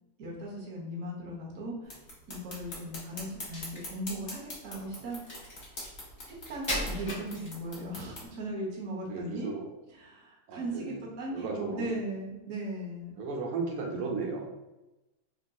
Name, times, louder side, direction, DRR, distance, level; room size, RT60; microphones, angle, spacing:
voice 1, 0.2-5.8 6.3-9.5 10.0-13.2, right 1 dB, 60° right, -3 dB, 0.8 m, -38 dB
sound 1, 1.8-8.3, left 1 dB, 40° left, 0.9 m, -45 dB
Crack, 3.4-7.9, left 1 dB, 25° left, 0.6 m, -39 dB
voice 2, 9.0-9.6 10.5-11.0 11.3-11.9 13.2-14.5, right 4 dB, 85° right, 0 dB, 1.5 m, -35 dB
3.8 x 2.5 x 2.2 m, 1.0 s
omnidirectional pair, 2.4 m